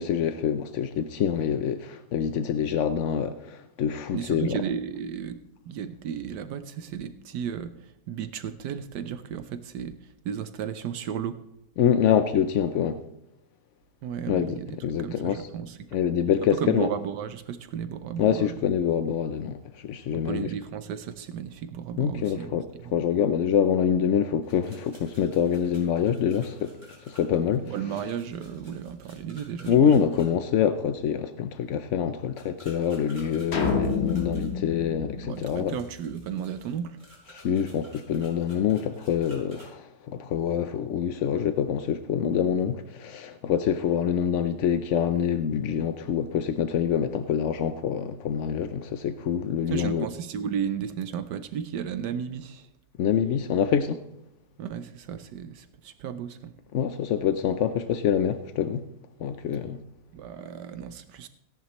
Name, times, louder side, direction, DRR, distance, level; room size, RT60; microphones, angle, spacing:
voice 1, 0.0-4.6 11.8-13.0 14.3-15.5 15.9-16.9 18.2-20.5 22.0-26.7 27.0-27.7 29.7-35.7 37.3-50.1 53.0-54.0 56.7-58.9 59.2-59.8, left 8 dB, 65° left, 0.7 m, -26 dB
voice 2, 4.1-5.4 5.7-11.4 14.0-15.9 16.5-18.5 20.1-22.6 27.6-30.1 35.2-37.0 49.7-52.7 54.6-56.5 60.1-61.3, right 8 dB, 75° right, 1.3 m, -34 dB
sound 1, 24.4-30.3 32.3-34.5 35.3-39.7, equal, 25° right, 4.5 m, -53 dB
sound 2, 33.5-36.0, left 4 dB, 40° left, 1.5 m, -29 dB
17.0 x 10.5 x 3.0 m
omnidirectional pair, 1.8 m